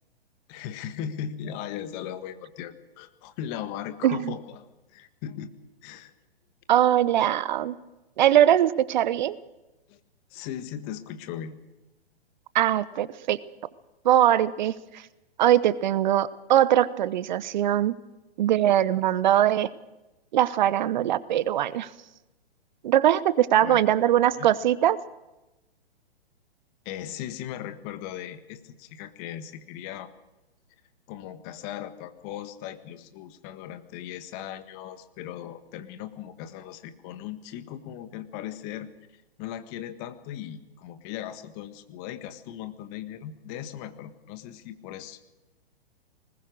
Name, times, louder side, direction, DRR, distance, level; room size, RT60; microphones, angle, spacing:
voice 1, 0.5-5.5 5.8-6.1 9.9-10.0 10.3-11.6 23.5-24.5 26.8-30.1 31.1-45.2, left 10 dB, 30° left, 11 dB, 1.7 m, -38 dB
voice 2, 6.7-7.7 8.2-9.4 12.5-13.4 14.0-14.7 15.4-18.0 18.4-19.7 20.3-21.9 22.8-25.0, right 11 dB, 45° right, 18 dB, 1.0 m, -21 dB
20.5 x 20.0 x 6.4 m, 1.0 s
figure-of-eight pair, 120°, 31 cm